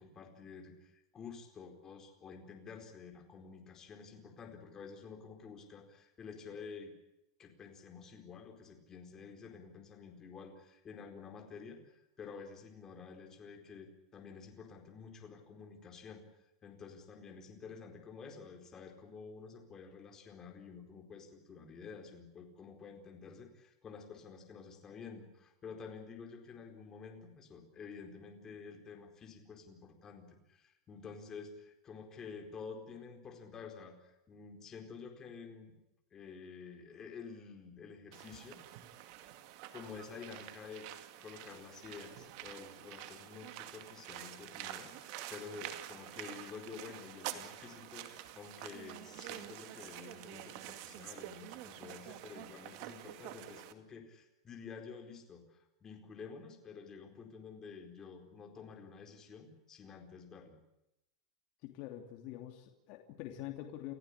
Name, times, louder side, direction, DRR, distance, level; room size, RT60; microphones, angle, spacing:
voice 1, 0.0-6.9 7.4-16.2 16.6-35.8 36.1-38.6 39.7-60.6, left 5 dB, 20° left, 4 dB, 4.4 m, -50 dB
sound 1, 38.1-53.7, right 13 dB, 50° right, 2.3 m, -48 dB
voice 2, 61.6-63.9, left 13 dB, 40° left, 3 dB, 2.9 m, -45 dB
29.5 x 15.0 x 9.9 m, 0.88 s
supercardioid pair, 160°, 3 cm